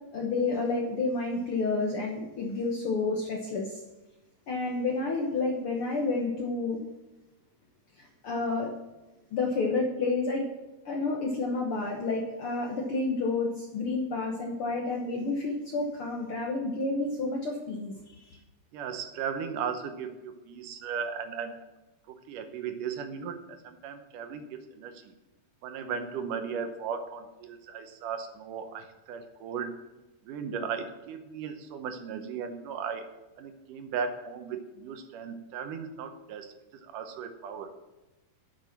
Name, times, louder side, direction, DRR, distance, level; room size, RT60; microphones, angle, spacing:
voice 1, 0.1-3.8 4.5-6.9 8.0-8.7 9.3-10.4 10.8-18.4, left 3 dB, 60° left, 0 dB, 1.5 m, -30 dB
voice 2, 18.7-21.6 22.1-25.1 25.6-29.8 30.3-33.1 33.4-36.5 36.8-37.7, right 6 dB, 75° right, 7 dB, 2.4 m, -36 dB
9.4 x 7.9 x 5.9 m, 1.0 s
omnidirectional pair, 4.0 m